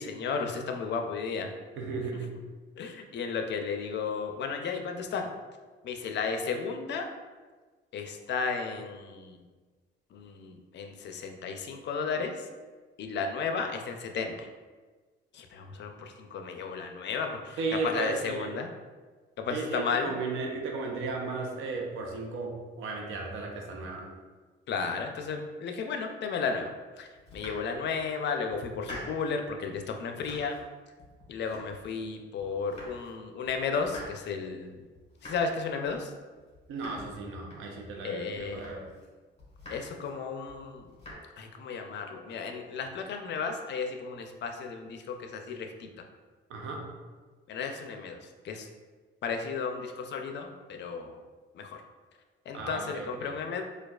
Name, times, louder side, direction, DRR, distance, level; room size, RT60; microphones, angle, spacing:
voice 1, 0.0-1.5 2.8-5.3 5.8-7.1 7.9-9.4 10.1-12.3 13.0-14.5 15.3-17.6 17.8-18.7 19.4-20.1 24.7-26.7 27.0-30.6 31.3-34.7 35.2-36.1 38.0-38.6 39.7-40.9 41.4-45.9 47.5-48.2 48.4-48.7 49.2-51.2 51.5-51.8 52.5-53.6, left 5 dB, 60° left, 4 dB, 0.5 m, -34 dB
voice 2, 1.8-2.3 17.6-18.5 19.5-24.1 36.7-38.9 46.5-46.8 52.5-53.3, right 3 dB, 90° right, 0 dB, 0.6 m, -35 dB
Domestic sounds home sounds, 27.1-28.1 28.5-29.4 29.8-30.7 31.0-32.1 32.4-33.2 33.4-38.0 38.4-39.1 39.4-40.1 40.5-41.1, left 1 dB, 30° left, 1.4 m, -47 dB
4.6 x 2.3 x 2.3 m, 1.4 s
cardioid pair, 90°, 20 cm